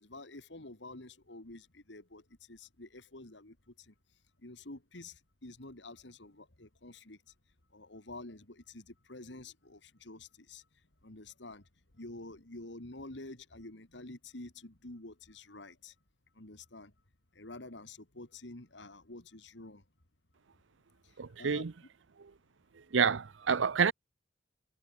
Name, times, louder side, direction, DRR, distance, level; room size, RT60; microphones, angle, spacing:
voice 1, 0.0-2.2 2.5-3.6 3.9-4.0 4.4-7.2 7.7-10.6 11.0-11.6 12.0-15.9 16.4-16.9 17.3-19.8 21.3-21.6, left 2 dB, 70° left, 2.5 m, -48 dB
voice 2, 21.2-21.7 22.2-22.3 22.9-23.9, right 6 dB, 85° right, 0.6 m, -28 dB
head